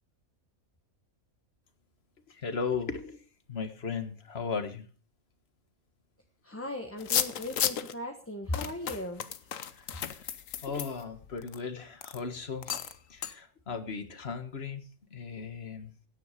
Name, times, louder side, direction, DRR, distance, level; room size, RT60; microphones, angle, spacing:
voice 1, 2.3-3.2 3.5-4.9 9.7-10.3 10.6-14.8 15.1-15.9, left 5 dB, 45° left, 9 dB, 1.8 m, -37 dB
voice 2, 6.4-9.5, left 1 dB, 10° left, 3 dB, 1.2 m, -37 dB
sound 1, 7.0-7.9 8.5-11.6 12.0-12.2 12.6-13.0 13.2-13.3, left 9 dB, 70° left, 1.3 m, -33 dB
17.0 x 9.5 x 5.1 m, 0.39 s
omnidirectional pair, 1.5 m